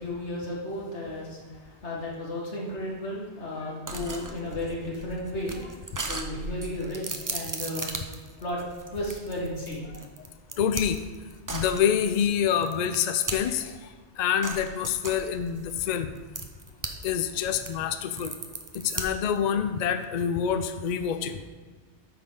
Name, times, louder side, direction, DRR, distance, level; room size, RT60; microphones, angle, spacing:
voice 1, 0.0-1.4 1.8-5.7 6.0-7.9 8.4-8.6 8.9-9.9 18.2-18.3, left 1 dB, 90° left, -4 dB, 2.2 m, -34 dB
sound 1, 3.9-13.7 14.4-17.1 17.4-19.4, right 2 dB, 25° right, 0.5 m, -37 dB
voice 2, 10.6-11.0 11.5-13.8 14.2-16.1 17.0-18.3 18.7-21.4, left 8 dB, 55° left, 8 dB, 0.5 m, -26 dB
8.8 x 6.0 x 3.8 m, 1.5 s
omnidirectional pair, 1.1 m